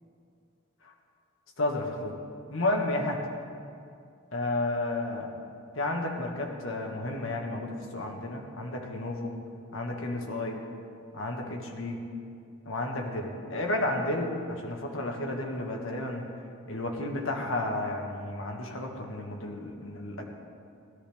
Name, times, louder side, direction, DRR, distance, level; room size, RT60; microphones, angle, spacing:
voice 1, 1.6-2.1 2.5-3.2 4.3-5.3 5.7-9.3 9.7-10.6 11.1-12.0 12.6-16.3 16.7-20.3, left 2 dB, 80° left, 1 dB, 1.5 m, -32 dB
16.5 x 13.0 x 3.5 m, 2.4 s
head